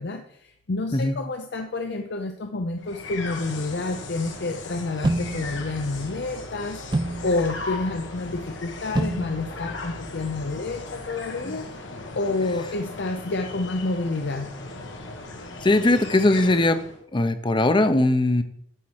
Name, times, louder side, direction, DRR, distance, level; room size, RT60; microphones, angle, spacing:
voice 1, 0.0-11.7 12.2-14.5, left 3 dB, 65° left, 5 dB, 0.6 m, -29 dB
sound 1, 2.8-17.0, left 3 dB, 85° left, 1.4 m, -38 dB
sound 2, 5.0-11.1, right 2 dB, 25° right, 0.5 m, -32 dB
voice 2, 15.6-16.8 17.1-18.4, left 2 dB, 25° left, 10 dB, 0.7 m, -20 dB
10.0 x 4.2 x 6.4 m, 0.70 s
head